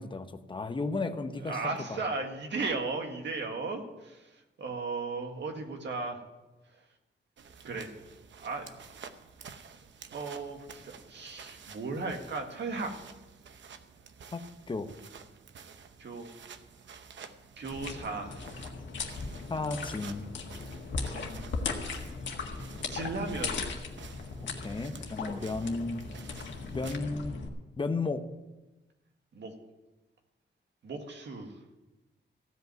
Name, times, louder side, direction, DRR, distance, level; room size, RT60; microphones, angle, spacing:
voice 1, 0.0-2.0 14.3-14.9 19.5-20.3 24.4-26.0 26.7-27.4 27.8-28.3, left 3 dB, 25° left, 7 dB, 0.9 m, -34 dB
voice 2, 1.5-6.2 7.6-7.9 8.4-8.7 10.1-12.9 16.0-16.3 17.6-18.4 21.0-21.4 22.9-23.6 29.3-29.5 30.8-31.5, right 3 dB, 75° right, 4 dB, 1.8 m, -36 dB
sound 1, 7.4-27.0, right 6 dB, 90° right, 0.9 m, -51 dB
sound 2, 17.7-27.5, left 4 dB, 85° left, 1.6 m, -38 dB
15.5 x 5.4 x 9.2 m, 1.1 s
wide cardioid pair, 145°, 19 cm